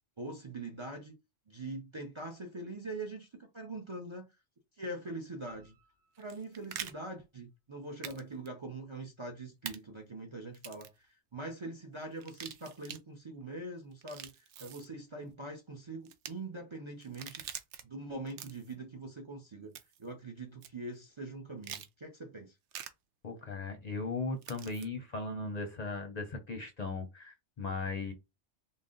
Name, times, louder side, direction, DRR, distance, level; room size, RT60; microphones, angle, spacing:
voice 1, 0.2-1.1 1.5-4.3 4.8-5.7 6.2-17.4 17.8-19.7 20.0-22.6, right 2 dB, 35° right, 0.5 m, -43 dB
sound 1, 5.5-7.9, right 2 dB, 55° right, 2.1 m, -63 dB
sound 2, 6.2-6.9 8.0-8.2 8.5-8.6 9.7-9.8 10.5-11.0 12.2-13.0 13.9-14.9 16.1-16.3 17.0-17.8 18.3-18.7 19.8-20.1 20.6-20.7 21.6-21.9 22.7-22.9 24.4-24.9, right 9 dB, 80° right, 0.9 m, -44 dB
voice 2, 23.2-28.1, left 3 dB, 45° left, 0.6 m, -37 dB
3.9 x 2.1 x 3.7 m
omnidirectional pair, 1.2 m